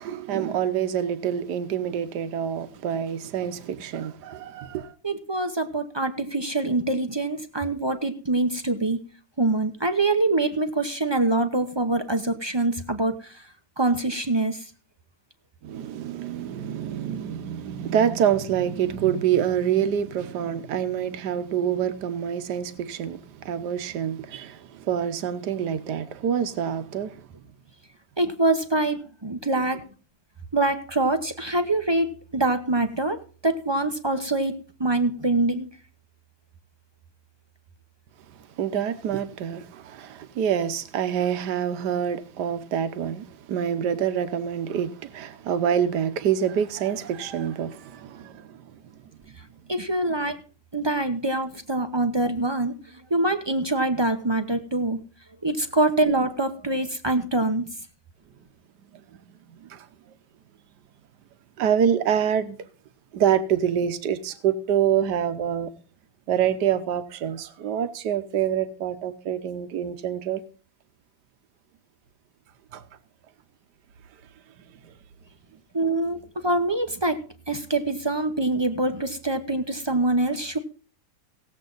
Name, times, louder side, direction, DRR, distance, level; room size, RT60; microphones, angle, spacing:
voice 1, 0.0-4.9 15.6-27.2 38.6-48.8 51.8-51.9 58.9-59.9 61.6-62.7 63.1-65.7 66.3-70.4 72.7-72.8 74.8-74.9, right 9 dB, 75° right, 1.5 m, -26 dB
voice 2, 5.0-9.0 9.4-13.5 13.8-14.7 28.2-29.8 30.5-35.7 49.7-50.4 50.7-55.0 55.4-57.7 75.7-77.2 77.5-80.6, right 2 dB, 25° right, 0.5 m, -25 dB
17.5 x 7.8 x 3.9 m
omnidirectional pair, 1.8 m